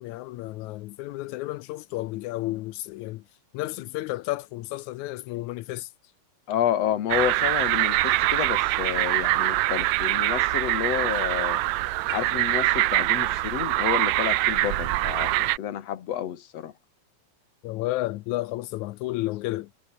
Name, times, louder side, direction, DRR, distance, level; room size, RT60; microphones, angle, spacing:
voice 1, 0.0-3.2 3.5-5.9 17.6-19.7, left 18 dB, 80° left, 1.7 m, -32 dB
voice 2, 6.5-11.6 12.1-16.7, left 10 dB, 55° left, 2.4 m, -30 dB
sound 1, 7.1-15.6, right 17 dB, 80° right, 1.6 m, -24 dB
omnidirectional pair, 4.1 m